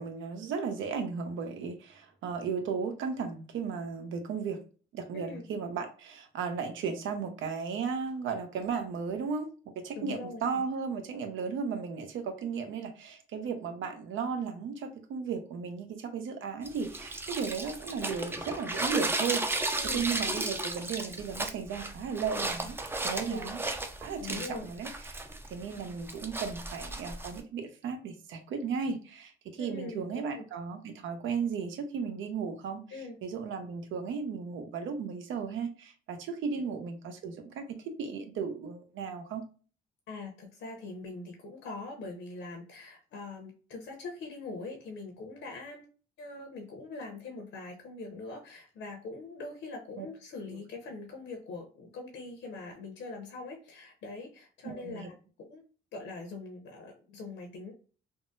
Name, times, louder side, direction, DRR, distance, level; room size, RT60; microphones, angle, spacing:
voice 1, 0.0-4.6 4.9-9.5 9.8-23.6 24.0-24.9 25.4-39.4 50.0-50.1 54.6-55.1, right 5 dB, 80° right, 7 dB, 0.6 m, -35 dB
voice 2, 10.0-10.4 10.7-10.8 19.8-20.0 23.3-23.5 24.2-24.7 29.6-30.5 32.9-33.2 40.1-45.9 46.2-55.1 55.4-55.6 55.9-57.7, left 3 dB, 80° left, 2 dB, 0.7 m, -42 dB
sound 1, 16.7-27.4, right 2 dB, 10° right, 0.4 m, -34 dB
3.6 x 2.1 x 2.6 m, 0.38 s
cardioid pair, 90°, 20 cm